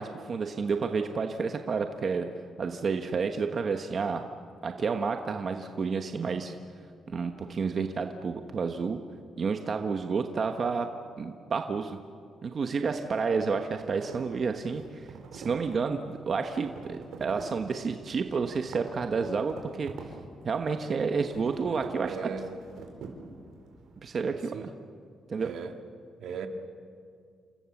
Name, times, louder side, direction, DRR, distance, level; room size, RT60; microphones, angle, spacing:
voice 1, 0.0-2.3 2.6-4.2 4.6-6.5 7.1-9.0 9.4-10.9 11.2-12.0 12.4-19.9 20.4-22.3 24.0-24.5 25.3-25.5, right 5 dB, 35° right, 5 dB, 1.2 m, -30 dB
sound 1, 13.5-24.0, right 4 dB, 90° right, 4.2 m, -46 dB
voice 2, 21.6-22.5 24.3-24.7 25.4-25.8 26.2-26.5, right 7 dB, 70° right, 5 dB, 2.2 m, -39 dB
29.0 x 26.5 x 7.3 m, 2.3 s
cardioid pair, 165°, 0 cm